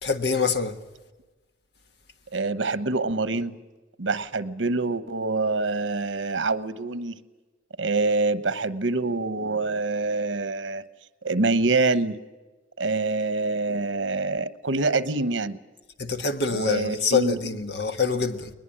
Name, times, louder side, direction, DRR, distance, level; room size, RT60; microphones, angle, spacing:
voice 1, 0.0-0.7 16.0-18.5, left 5 dB, 60° left, 1.5 m, -25 dB
voice 2, 2.3-3.6 4.0-7.2 7.8-10.8 11.2-12.2 12.8-15.6 16.5-17.4, right 3 dB, 85° right, 1.1 m, -25 dB
21.0 x 20.5 x 8.7 m
head